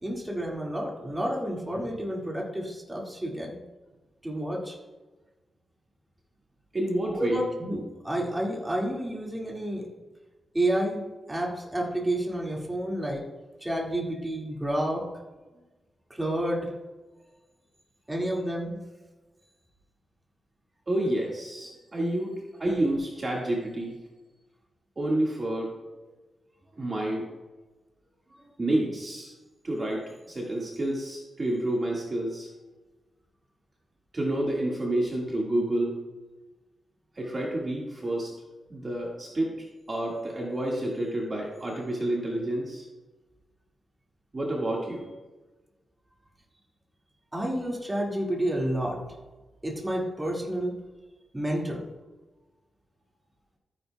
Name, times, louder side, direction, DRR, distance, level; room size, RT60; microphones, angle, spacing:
voice 1, 0.0-3.6 4.2-4.8 7.1-9.8 10.5-11.0 11.3-13.2 13.6-15.1 16.1-16.7 18.1-18.8 47.3-49.1 49.6-50.8 51.3-51.8, right 1 dB, 10° right, -2 dB, 2.0 m, -30 dB
voice 2, 6.7-7.5 20.9-23.9 25.0-25.8 26.8-27.3 28.4-29.3 29.6-32.5 34.1-36.0 37.2-38.3 38.7-42.9 44.3-45.1, right 1 dB, 30° right, -3 dB, 1.7 m, -29 dB
13.5 x 9.6 x 2.3 m, 1.2 s
wide cardioid pair, 135°, 0 cm